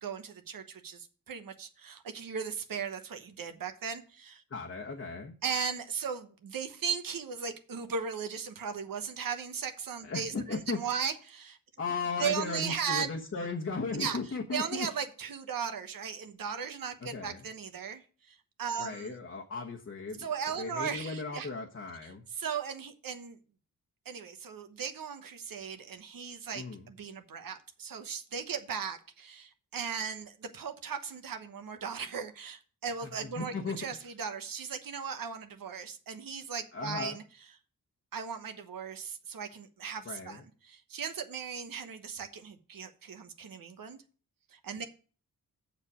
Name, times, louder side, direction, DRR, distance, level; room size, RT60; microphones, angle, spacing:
voice 1, 0.0-4.4 5.4-11.6 12.2-13.1 14.0-14.2 14.5-18.0 18.3-19.1 20.2-21.5 22.4-23.4 24.0-37.2 38.1-44.0 44.5-44.8, right 6 dB, 70° right, 1.2 m, -37 dB
voice 2, 4.5-5.3 10.0-10.8 11.8-14.9 17.0-17.5 18.8-20.3 20.6-22.2 26.5-26.9 33.0-34.1 36.7-37.2 40.0-40.4, left 4 dB, 45° left, 1.2 m, -36 dB
7.1 x 6.8 x 4.9 m
cardioid pair, 95°, 35 cm